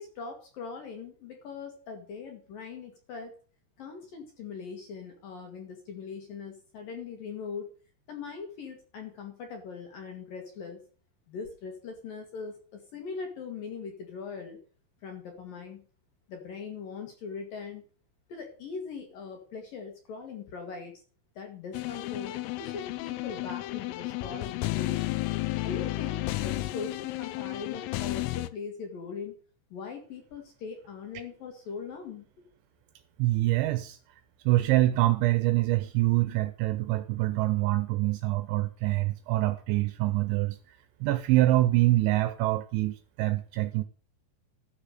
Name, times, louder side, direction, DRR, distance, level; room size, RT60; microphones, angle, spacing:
voice 1, 0.0-3.3 3.8-7.7 8.1-10.8 11.3-14.6 15.0-15.8 16.3-17.8 18.3-20.9 21.4-25.0 25.6-29.3 29.7-32.3, left 5 dB, 60° left, 2.6 m, -40 dB
sound 1, 21.7-28.5, left 18 dB, 85° left, 3.3 m, -32 dB
voice 2, 33.2-34.0 34.5-40.6 41.0-43.8, right 17 dB, 80° right, 2.8 m, -25 dB
13.0 x 6.9 x 6.6 m
omnidirectional pair, 5.9 m